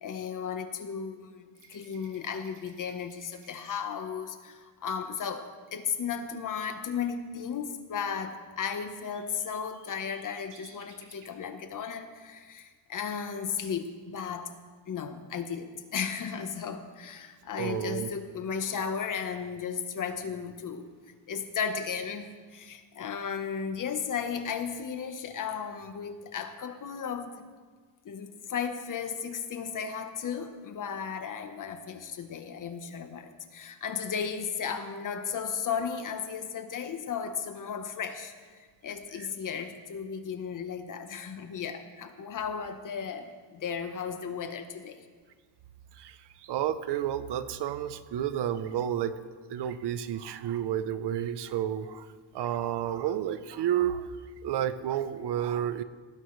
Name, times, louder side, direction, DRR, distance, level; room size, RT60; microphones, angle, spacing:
voice 1, 0.0-14.5 14.9-20.9 21.3-27.5 28.0-45.0, left 7 dB, 45° left, 8 dB, 1.1 m, -35 dB
sound 1, 1.5-4.6 8.2-8.3 8.4-11.4 13.1-13.2 13.6-14.3, right 4 dB, 45° right, 2.4 m, -57 dB
voice 2, 17.6-18.1 39.1-39.3 45.9-52.1 52.3-54.1 54.4-55.8, right 10 dB, 65° right, 12 dB, 0.8 m, -31 dB
18.5 x 16.0 x 3.2 m, 1.5 s
cardioid pair, 155°, 44 cm